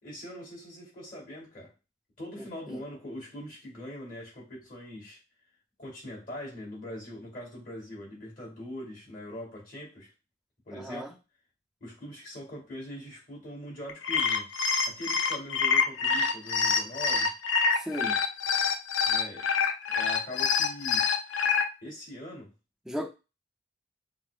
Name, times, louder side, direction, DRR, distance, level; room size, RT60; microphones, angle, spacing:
voice 1, 0.0-1.7 2.2-5.2 5.8-10.1 10.7-11.1 11.8-14.5 14.9-17.3 19.1-19.5 19.9-21.1 21.8-22.5, equal, 50° left, 2.1 m, -42 dB
voice 2, 2.4-2.8 10.7-11.1 17.8-18.2 22.9-23.1, equal, 5° right, 0.4 m, -36 dB
sound 1, 13.9-21.6, left 5 dB, 90° left, 0.5 m, -26 dB
5.7 x 2.1 x 2.4 m
head